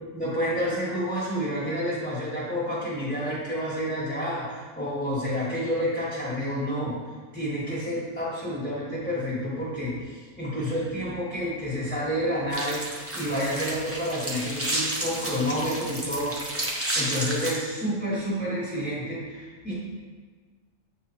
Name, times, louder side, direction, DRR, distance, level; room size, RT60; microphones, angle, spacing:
voice 1, 0.1-6.9 7.3-19.7, equal, 5° left, -8 dB, 1.3 m, -29 dB
sound 1, 12.5-17.6, right 1 dB, 15° right, 0.5 m, -31 dB
7.6 x 2.7 x 4.5 m, 1.5 s
omnidirectional pair, 1.4 m